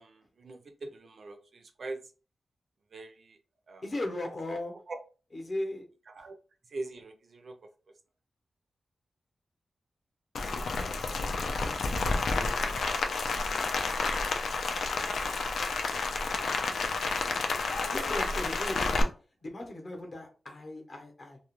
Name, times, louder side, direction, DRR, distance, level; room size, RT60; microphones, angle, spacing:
voice 1, 0.0-2.0 2.9-3.4 3.7-3.8 4.9-5.0 6.1-6.4 6.7-7.6, right 2 dB, 50° right, 0.4 m, -42 dB
voice 2, 3.8-4.7 5.3-5.8 11.1-11.4 17.9-19.1 19.4-21.4, left 1 dB, 40° left, 0.7 m, -37 dB
Rain, 10.3-19.0, left 3 dB, 80° left, 0.3 m, -30 dB
2.3 x 2.1 x 2.9 m
wide cardioid pair, 160°, 0 cm